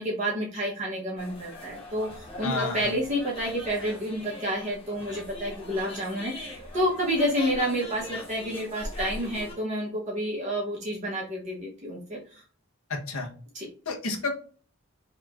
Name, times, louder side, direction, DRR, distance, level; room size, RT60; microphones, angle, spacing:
voice 1, 0.0-12.4 13.5-13.7, equal, 30° right, -3 dB, 0.8 m, -29 dB
sound 1, 1.2-9.5, left 2 dB, 25° left, 0.8 m, -41 dB
voice 2, 2.4-2.9 12.9-13.3 13.9-14.3, left 3 dB, 75° left, 2 dB, 0.9 m, -30 dB
2.9 x 2.4 x 3.4 m, 0.40 s
head